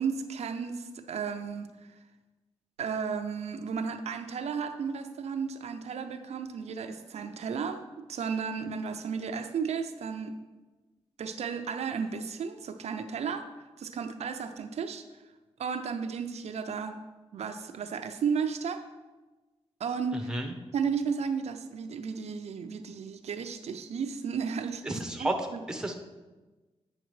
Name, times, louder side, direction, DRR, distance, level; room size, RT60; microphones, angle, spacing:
voice 1, 0.0-1.7 2.8-10.4 11.2-15.1 15.6-17.0 17.3-18.8 19.8-20.3 20.7-25.6, right 6 dB, 85° right, 7 dB, 0.5 m, -34 dB
voice 2, 20.1-20.5 24.8-25.3 25.7-25.9, right 1 dB, 5° right, 3 dB, 0.7 m, -32 dB
8.9 x 5.8 x 3.1 m, 1.2 s
wide cardioid pair, 120°, 11 cm